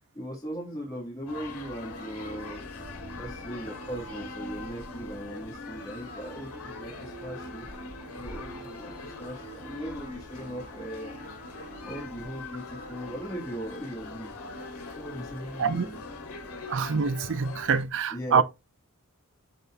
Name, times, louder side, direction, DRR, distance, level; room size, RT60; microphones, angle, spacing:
voice 1, 0.1-2.7 3.2-7.7 8.1-11.2 11.9-14.4 14.9-16.0 18.1-18.4, right 1 dB, 15° left, 1.7 m, -38 dB
sound 1, 1.3-17.8, left 2 dB, 75° left, 2.7 m, -41 dB
voice 2, 16.7-18.4, right 5 dB, 55° right, 0.5 m, -25 dB
12.0 x 4.1 x 2.3 m
head